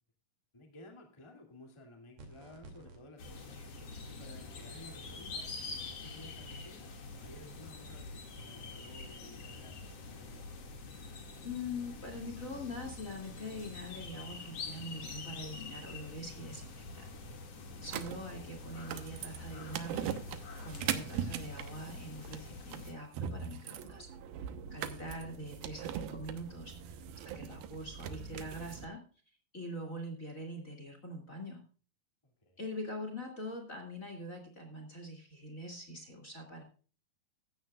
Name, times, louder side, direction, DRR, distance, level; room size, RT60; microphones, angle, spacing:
voice 1, 0.5-10.7 32.2-32.6, left 1 dB, 10° left, 2 dB, 2.0 m, -55 dB
sound 1, 2.2-3.0, right 2 dB, 55° right, 3.8 m, -52 dB
sound 2, 3.2-22.9, left 3 dB, 45° left, 3.0 m, -46 dB
voice 2, 11.4-17.0 17.8-24.1 24.7-29.0 29.5-31.6 32.6-36.6, left 1 dB, 25° left, 4 dB, 2.4 m, -43 dB
sound 3, 17.8-28.8, right 9 dB, 90° right, 2.9 m, -41 dB
15.5 x 13.5 x 2.4 m, 0.37 s
omnidirectional pair, 4.1 m